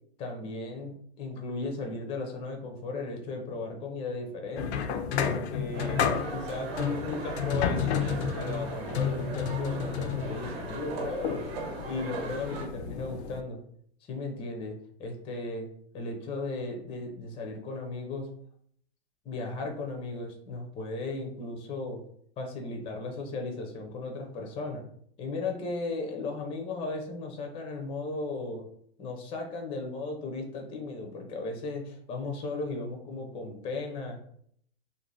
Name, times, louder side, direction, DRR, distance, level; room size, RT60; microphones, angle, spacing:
voice 1, 0.2-4.9 5.3-6.0 6.3-11.4 11.9-13.6 14.1-15.7 15.9-18.3 19.2-22.0 22.4-24.8 25.2-28.7 29.0-34.1, left 3 dB, 20° left, 2 dB, 0.4 m, -36 dB
sound 1, 4.6-13.4, left 7 dB, 80° left, 0.5 m, -32 dB
sound 2, 5.7-12.7, right 3 dB, 70° right, 0.9 m, -38 dB
2.6 x 2.1 x 3.2 m, 0.64 s
hypercardioid pair, 130°, 32 cm